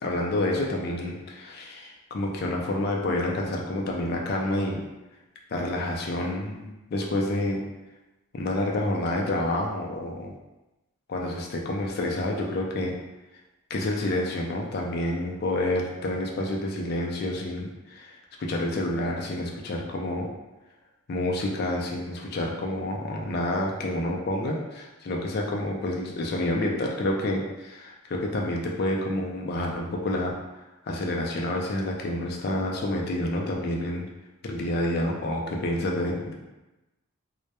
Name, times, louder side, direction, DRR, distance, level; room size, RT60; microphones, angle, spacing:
voice 1, 0.0-4.8 5.5-7.6 8.3-10.3 11.1-13.0 13.7-20.3 21.1-34.0 34.4-36.3, left 1 dB, 45° left, 0 dB, 0.3 m, -28 dB
2.1 x 2.0 x 2.8 m, 1.0 s
head